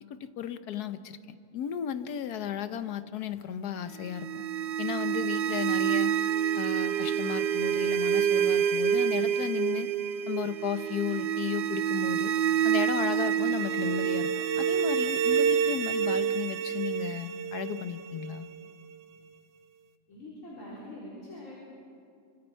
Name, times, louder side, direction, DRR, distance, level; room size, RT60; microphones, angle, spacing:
voice 1, 0.1-4.4 4.8-6.2 6.6-9.9 10.3-12.3 12.6-18.5, left 9 dB, 70° left, 11 dB, 1.3 m, -34 dB
sound 1, 4.0-18.9, right 9 dB, 90° right, 1.5 m, -28 dB
voice 2, 20.1-21.6, left 1 dB, 45° left, -7 dB, 4.6 m, -44 dB
27.0 x 25.5 x 4.5 m, 2.4 s
omnidirectional pair, 1.8 m